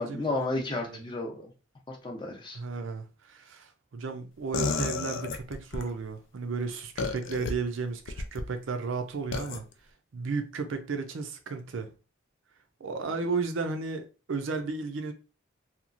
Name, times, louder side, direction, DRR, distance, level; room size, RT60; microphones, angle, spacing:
voice 1, 0.0-1.5 1.9-2.6, left 2 dB, 25° left, 0.6 m, -32 dB
voice 2, 2.5-9.6 10.1-11.9 12.8-15.1, right 4 dB, 70° right, 0.5 m, -34 dB
sound 1, 4.5-5.9 7.0-7.5 8.1-8.5 9.3-9.6, left 4 dB, 60° left, 0.4 m, -31 dB
2.9 x 2.3 x 2.4 m
head